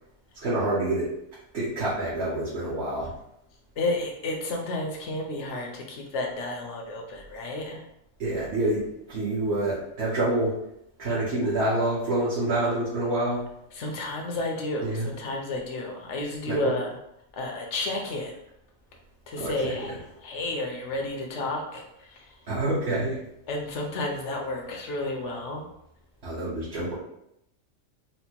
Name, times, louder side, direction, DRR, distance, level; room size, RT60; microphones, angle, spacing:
voice 1, 0.3-1.1 1.5-3.1 8.2-10.6 11.0-13.4 14.8-15.1 16.5-16.7 19.4-19.9 22.5-23.2 26.2-26.9, right 1 dB, 50° right, -10 dB, 1.1 m, -27 dB
voice 2, 3.8-7.8 13.8-16.9 17.3-18.3 19.3-19.9 20.2-22.2 23.5-25.6, left 2 dB, 65° left, 0 dB, 1.0 m, -31 dB
4.3 x 2.2 x 2.9 m, 0.80 s
omnidirectional pair, 1.4 m